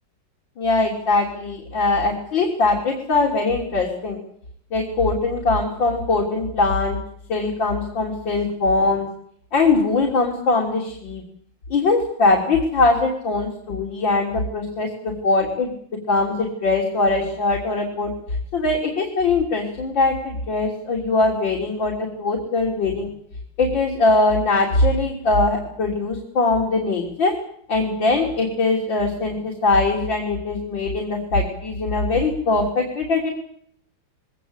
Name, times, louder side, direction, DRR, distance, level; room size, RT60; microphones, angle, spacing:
voice 1, 0.6-4.2 4.7-7.0 7.3-9.1 9.5-11.2 11.7-15.7 16.1-18.1 18.5-23.1 23.6-27.3 27.7-33.3, left 3 dB, 85° left, -1 dB, 4.3 m, -21 dB
21.5 x 19.0 x 8.4 m, 0.65 s
omnidirectional pair, 2.0 m